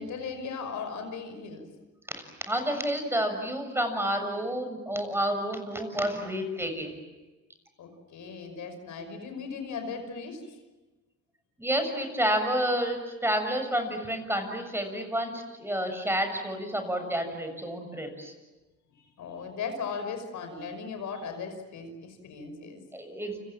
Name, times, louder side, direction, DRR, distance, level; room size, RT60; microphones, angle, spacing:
voice 1, 0.0-1.7 7.8-10.6 19.0-22.8, left 5 dB, 75° left, 7 dB, 5.6 m, -37 dB
voice 2, 2.1-6.9 11.6-18.3 22.9-23.4, equal, 10° right, 6 dB, 7.0 m, -30 dB
30.0 x 27.0 x 7.5 m, 1.1 s
cardioid pair, 90°, 30 cm